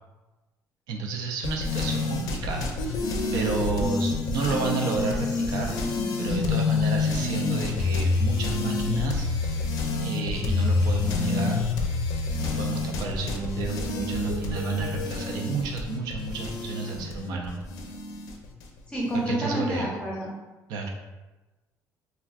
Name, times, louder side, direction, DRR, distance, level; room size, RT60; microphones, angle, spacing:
voice 1, 0.9-5.8 6.2-9.3 10.0-11.6 12.4-17.5 19.3-19.9 20.7-20.9, right 4 dB, 80° right, 1 dB, 0.5 m, -31 dB
sound 1, 1.4-18.7, left 3 dB, 85° left, 0.4 m, -27 dB
voice 2, 18.9-20.3, right 1 dB, 15° left, -5 dB, 0.6 m, -28 dB
3.4 x 2.2 x 2.4 m, 1.1 s
cardioid pair, 175°, 6 cm